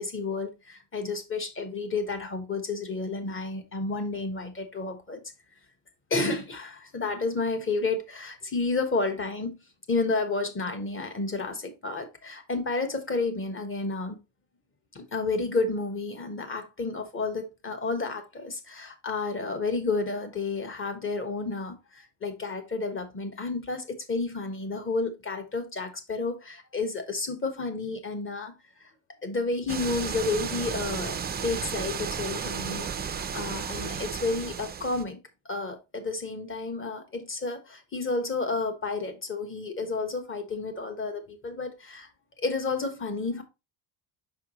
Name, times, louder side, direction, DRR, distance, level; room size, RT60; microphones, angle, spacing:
voice 1, 0.0-5.2 6.1-9.5 9.9-14.2 14.9-28.5 28.8-28.9 29.2-35.2 35.4-42.1 42.4-43.4, left 3 dB, 25° left, 1.2 m, -31 dB
sound 1, 29.7-35.0, right 6 dB, 20° right, 0.4 m, -33 dB
5.7 x 5.5 x 3.0 m
cardioid pair, 140°, 49 cm